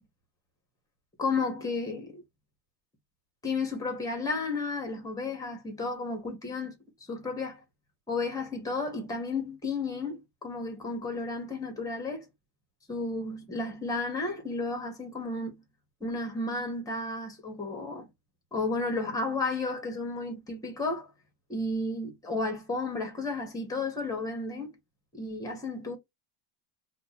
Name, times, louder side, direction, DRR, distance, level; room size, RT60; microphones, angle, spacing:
voice 1, 1.2-2.2 3.4-6.8 7.1-7.6 8.1-12.2 12.9-15.5 16.0-18.0 18.5-21.1 21.5-24.7 25.1-26.0, left 3 dB, 5° left, 0.9 m, -32 dB
2.7 x 2.2 x 4.0 m
supercardioid pair, 155°, 50 cm